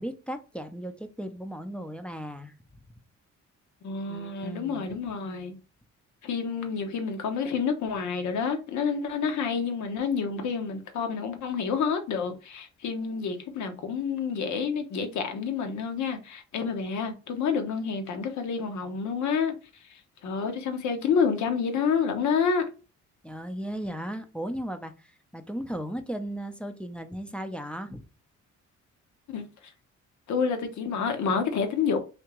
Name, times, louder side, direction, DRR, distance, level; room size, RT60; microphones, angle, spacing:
voice 1, 0.0-2.5 4.1-4.9 23.2-28.0, equal, 5° left, 0.4 m, -36 dB
voice 2, 3.8-5.5 6.2-19.5 20.2-22.6 29.3-29.5 30.3-32.0, left 6 dB, 70° left, 0.9 m, -28 dB
3.4 x 2.8 x 2.9 m
cardioid pair, 90°, 30 cm